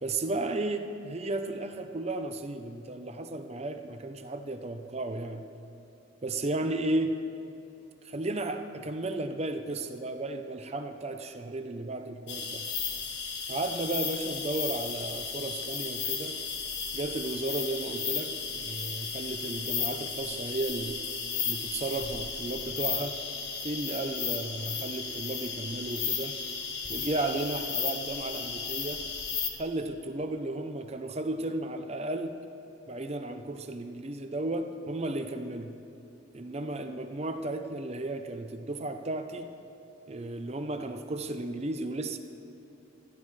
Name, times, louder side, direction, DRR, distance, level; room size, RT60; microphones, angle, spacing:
voice 1, 0.0-5.5 6.2-7.2 8.0-12.7 13.5-16.4 16.9-21.0 21.4-23.2 23.6-26.4 26.9-29.0 29.6-32.4 32.9-35.7 36.3-39.5 40.1-42.2, right 2 dB, 35° right, 7 dB, 0.7 m, -34 dB
sound 1, 12.3-29.5, left 6 dB, 60° left, 1.3 m, -34 dB
20.0 x 13.5 x 3.3 m, 2.9 s
head